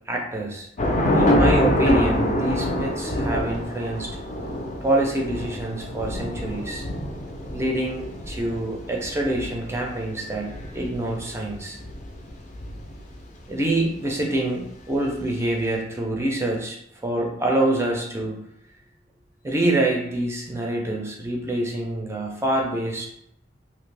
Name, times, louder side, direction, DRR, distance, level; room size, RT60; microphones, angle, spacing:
voice 1, 0.1-0.7 1.1-4.1 4.8-6.8 7.5-11.8 13.5-18.4 19.4-23.1, right 1 dB, 15° right, 0 dB, 0.4 m, -26 dB
Thunder / Rain, 0.8-13.3, left 1 dB, 40° left, 0.4 m, -26 dB
2.8 x 2.4 x 3.2 m, 0.75 s
head